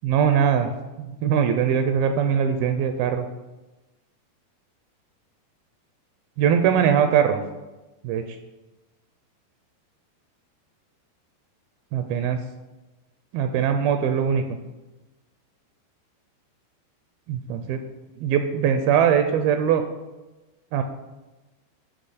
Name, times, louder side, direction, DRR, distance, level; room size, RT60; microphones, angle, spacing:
voice 1, 0.0-0.7 1.0-3.3 6.4-7.4 8.0-8.4 11.9-12.4 13.3-14.6 17.3-17.8 18.2-19.8 20.7-20.8, right 8 dB, 80° right, 7 dB, 2.3 m, -21 dB
14.5 x 5.5 x 4.1 m, 1.1 s
omnidirectional pair, 4.6 m